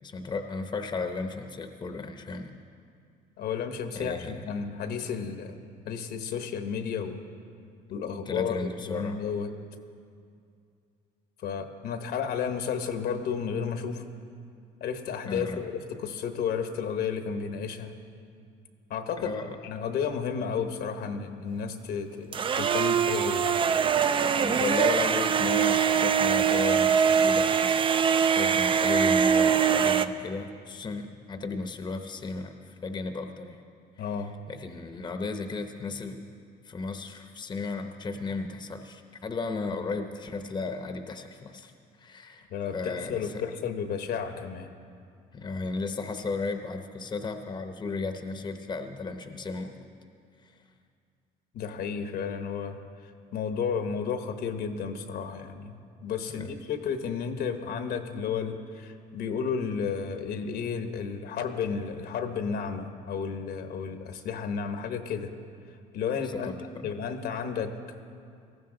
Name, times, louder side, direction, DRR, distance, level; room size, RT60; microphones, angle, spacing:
voice 1, 0.0-2.5 3.9-4.5 8.0-9.2 15.3-15.6 19.2-19.5 24.4-33.6 34.5-36.2 36.6-41.7 42.0-42.5 42.7-43.3 45.3-49.7 56.3-56.5 66.2-66.9, left 3 dB, 25° left, 6 dB, 0.8 m, -34 dB
voice 2, 3.4-7.2 7.9-9.5 11.4-14.0 14.8-17.9 18.9-19.3 19.6-23.6 34.0-34.3 42.5-44.7 51.5-65.3 65.9-66.5 66.8-67.7, left 6 dB, 70° left, 7 dB, 1.1 m, -32 dB
sound 1, 22.3-30.1, right 7 dB, 30° right, 0.4 m, -23 dB
18.5 x 14.5 x 3.8 m, 2.3 s
cardioid pair, 110°, 17 cm